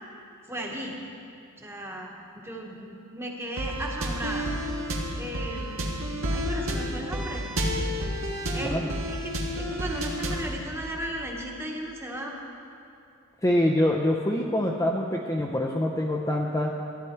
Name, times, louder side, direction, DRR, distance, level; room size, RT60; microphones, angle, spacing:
voice 1, 0.5-0.9 1.6-2.1 2.3-4.5 5.1-5.9 6.3-7.5 8.5-12.4, right 1 dB, 10° right, 0 dB, 1.2 m, -36 dB
sound 1, 3.6-10.5, equal, 75° right, 1.6 m, -30 dB
voice 2, 8.6-8.9 13.4-16.7, left 1 dB, 15° left, 0 dB, 0.5 m, -25 dB
14.0 x 9.9 x 4.4 m, 2.5 s
head